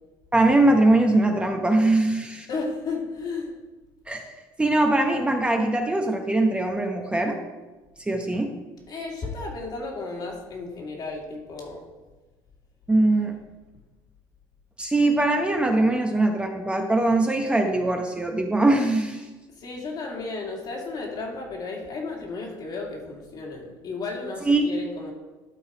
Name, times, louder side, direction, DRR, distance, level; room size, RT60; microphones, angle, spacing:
voice 1, 0.3-2.5 4.1-4.2 4.6-7.4 8.1-8.5 12.9-13.3 14.8-19.3 24.5-24.6, right 2 dB, 10° right, 3 dB, 0.9 m, -21 dB
voice 2, 2.5-3.5 8.9-11.9 19.6-25.1, left 3 dB, 50° left, 0 dB, 2.3 m, -33 dB
11.5 x 4.0 x 4.9 m, 1.2 s
supercardioid pair, 95°, 9 cm